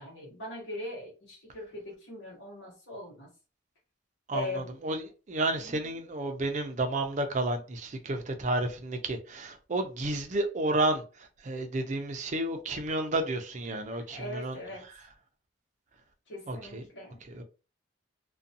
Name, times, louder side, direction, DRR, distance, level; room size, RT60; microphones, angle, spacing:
voice 1, 0.0-3.3 4.3-4.7 5.6-5.9 14.1-15.1 16.3-17.2, left 1 dB, 65° left, 1.1 m, -40 dB
voice 2, 4.3-14.6 16.5-16.9 17.3-17.4, right 2 dB, 40° right, 0.5 m, -31 dB
2.5 x 2.2 x 2.6 m
head